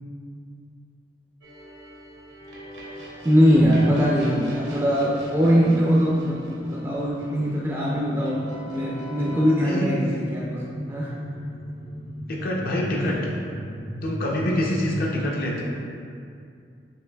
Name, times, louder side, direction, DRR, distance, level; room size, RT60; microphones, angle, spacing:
sound 1, 1.4-9.6, left 1 dB, 75° right, 0.8 m, -40 dB
sound 2, 2.2-15.0, equal, 70° left, 0.9 m, -38 dB
voice 1, 3.2-10.6 10.9-11.2, equal, 15° right, -5 dB, 0.3 m, -21 dB
voice 2, 12.3-13.2 14.0-15.6, left 1 dB, 55° left, -2 dB, 0.5 m, -26 dB
6.4 x 2.5 x 2.2 m, 2.4 s
head